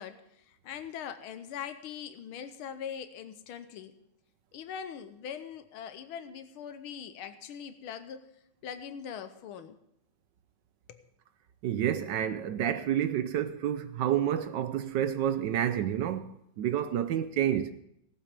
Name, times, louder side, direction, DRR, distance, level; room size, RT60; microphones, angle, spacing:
voice 1, 0.0-4.0 4.5-8.3 8.6-9.8 10.9-11.0, left 8 dB, 85° left, 1.7 m, -42 dB
voice 2, 11.6-16.3 16.6-17.7, right 10 dB, 70° right, 1.2 m, -29 dB
17.5 x 7.5 x 5.2 m
omnidirectional pair, 2.3 m